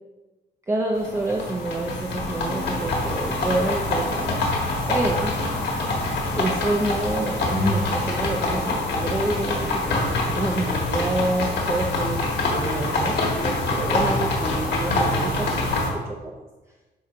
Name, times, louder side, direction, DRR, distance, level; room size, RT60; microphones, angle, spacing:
voice 1, 0.7-4.5 4.9-5.3 6.3-15.7 16.1-16.3, right 2 dB, 15° right, 1 dB, 0.4 m, -28 dB
sound 1, 0.9-15.9, left 2 dB, 70° left, 1.5 m, -25 dB
9.4 x 3.9 x 2.6 m, 1.2 s
cardioid pair, 135°, 19 cm